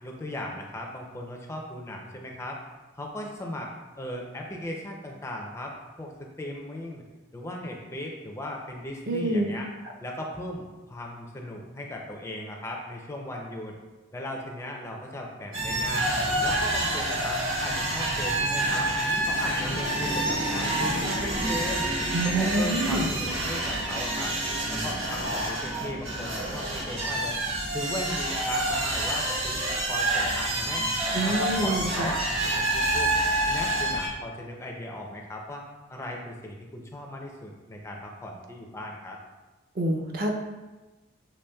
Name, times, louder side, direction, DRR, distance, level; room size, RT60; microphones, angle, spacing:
voice 1, 0.0-2.6 3.0-3.7 4.0-7.0 7.3-9.7 10.0-13.7 14.1-16.1 16.4-18.9 19.2-21.8 22.2-24.3 24.7-27.4 27.7-30.8 31.2-33.1 33.5-35.6 35.9-39.2, left 1 dB, 15° left, 0 dB, 0.4 m, -37 dB
voice 2, 9.1-9.5 22.1-23.1 31.1-32.1 39.8-40.3, right 2 dB, 45° right, 2 dB, 0.5 m, -26 dB
sound 1, 15.5-34.1, right 1 dB, 80° right, 1.3 m, -28 dB
6.7 x 2.9 x 2.2 m, 1.2 s
head